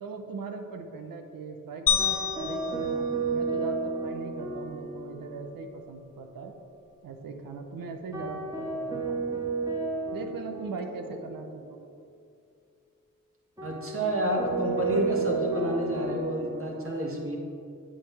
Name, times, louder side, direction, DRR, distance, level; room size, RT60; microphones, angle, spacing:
voice 1, 0.0-6.5 7.0-9.3 10.1-11.8, right 4 dB, 90° right, 5 dB, 0.8 m, -40 dB
sound 1, 1.9-4.2, left 8 dB, 85° left, 0.7 m, -30 dB
sound 2, 2.0-5.5 5.8-5.9 8.1-11.5 13.6-16.8, right 4 dB, 10° right, 1.9 m, -32 dB
voice 2, 13.6-17.4, equal, 40° right, -2 dB, 1.8 m, -29 dB
8.8 x 6.7 x 3.4 m, 2.5 s
cardioid pair, 60°, 33 cm